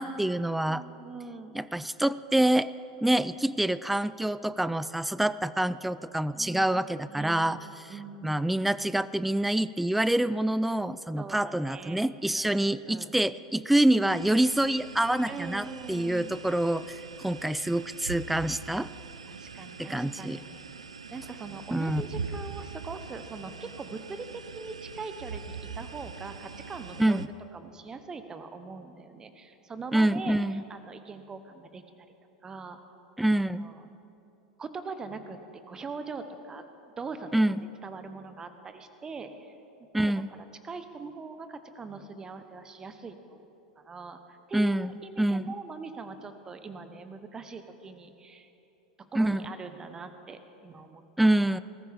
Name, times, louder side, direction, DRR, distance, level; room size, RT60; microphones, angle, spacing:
voice 1, 0.0-0.8 1.5-2.7 3.0-7.6 7.8-7.9 8.2-16.8 17.2-18.9 19.8-20.4 21.7-22.0 27.0-27.2 29.9-30.6 33.2-33.7 37.3-37.7 39.9-40.3 44.5-44.9 45.2-45.5 49.2-49.5 51.2-51.6, right 1 dB, 5° right, 16 dB, 0.3 m, -26 dB
voice 2, 0.6-1.6 6.4-7.5 7.9-8.4 11.2-12.0 12.3-13.1 15.3-16.4 19.3-20.6 21.1-32.1 32.4-32.8 33.6-33.9 34.6-36.6 37.0-37.3 37.8-39.5 40.0-40.1 40.6-43.4 43.8-48.5 49.1-51.3, right 4 dB, 20° right, 9 dB, 1.1 m, -42 dB
sound 1, 14.1-27.3, right 5 dB, 80° right, 0.5 m, -42 dB
20.0 x 14.0 x 3.7 m, 2.9 s
figure-of-eight pair, 85°, 3 cm